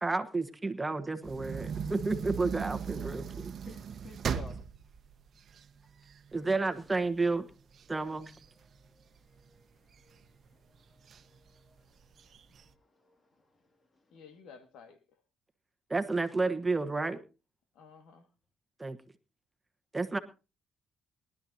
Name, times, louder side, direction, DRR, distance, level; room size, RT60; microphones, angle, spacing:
voice 1, 0.0-3.5 6.3-7.5 7.9-8.3 15.9-17.2 18.8-19.0 19.9-20.2, right 3 dB, 20° right, 1.2 m, -31 dB
sound 1, 1.2-6.4 6.9-7.0 7.3-9.4 9.9-10.5 11.1-11.2 11.5-11.6 12.0-12.6, right 7 dB, 55° right, 1.0 m, -38 dB
voice 2, 3.7-4.6 8.1-8.2 8.7-12.1 12.6-13.3, left 2 dB, 35° left, 2.5 m, -55 dB
voice 3, 14.1-15.0 17.8-18.2, left 5 dB, 85° left, 1.9 m, -53 dB
22.5 x 12.0 x 2.8 m
cardioid pair, 90°, 0 cm